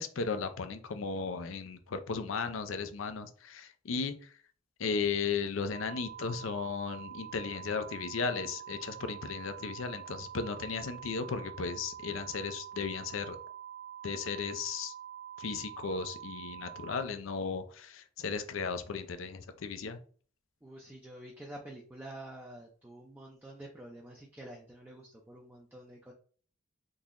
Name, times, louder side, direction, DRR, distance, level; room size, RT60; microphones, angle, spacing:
voice 1, 0.0-4.1 4.8-13.4 14.0-14.9 15.4-20.0, left 5 dB, 75° left, 9 dB, 0.5 m, -35 dB
sound 1, 5.7-17.0, right 10 dB, 65° right, 0.8 m, -46 dB
voice 2, 20.6-26.1, right 1 dB, 10° right, -2 dB, 0.4 m, -48 dB
3.8 x 2.9 x 2.5 m, 0.43 s
head